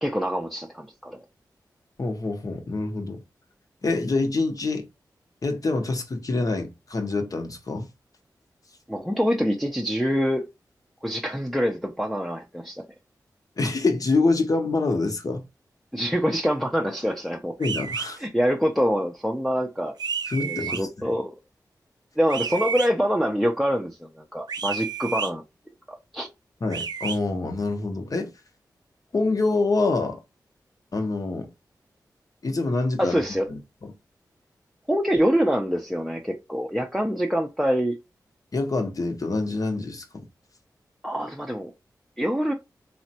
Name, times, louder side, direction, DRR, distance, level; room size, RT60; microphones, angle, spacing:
voice 1, 0.0-1.2 8.9-10.5 11.0-12.8 15.9-17.6 18.2-19.9 20.4-21.3 22.2-25.4 25.9-26.3 33.0-33.5 34.9-38.0 41.0-41.7 42.2-42.5, equal, ahead, 0.5 m, -25 dB
voice 2, 2.0-3.2 3.8-4.9 5.4-7.9 13.6-15.4 17.6-18.2 20.3-21.1 26.6-28.3 29.1-30.2 30.9-31.5 32.4-33.2 33.5-33.9 38.5-40.3, left 3 dB, 50° left, 0.7 m, -26 dB
sound 1, 17.6-18.1 20.0-20.8 22.3-22.9 24.5-25.3 26.7-27.2, right 6 dB, 65° right, 0.4 m, -30 dB
3.2 x 2.0 x 2.7 m
cardioid pair, 45°, 7 cm